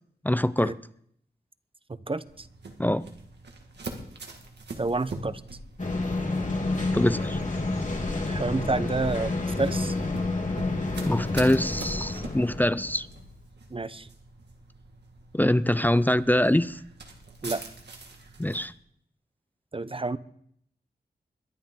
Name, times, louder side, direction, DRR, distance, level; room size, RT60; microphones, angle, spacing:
voice 1, 0.2-0.7 2.8-3.1 6.9-7.4 11.1-13.1 15.3-16.8 18.4-18.7, left 1 dB, 10° left, 16 dB, 0.5 m, -24 dB
voice 2, 2.1-2.5 4.8-5.4 8.3-9.3 9.6-9.9 13.7-14.1 17.4-17.6 19.7-20.2, right 3 dB, 30° right, 14 dB, 0.8 m, -29 dB
sound 1, 2.3-18.7, right 3 dB, 80° right, 2.0 m, -44 dB
sound 2, 5.8-13.1, left 2 dB, 45° left, 3.0 m, -29 dB
22.0 x 10.5 x 3.8 m, 0.68 s
cardioid pair, 45°, 17 cm